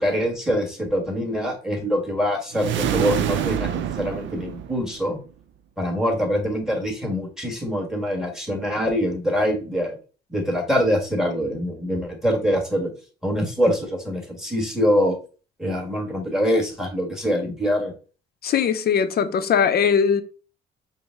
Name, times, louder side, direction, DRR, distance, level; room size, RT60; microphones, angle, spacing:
voice 1, 0.0-5.2 5.8-10.0 10.3-12.9 13.2-15.2 15.6-17.9, equal, ahead, 1.5 m, -24 dB
sound 1, 2.5-5.1, right 10 dB, 70° right, 0.5 m, -26 dB
voice 2, 18.4-20.2, left 7 dB, 50° left, 0.6 m, -20 dB
5.1 x 2.1 x 3.6 m
cardioid pair, 90°, 20 cm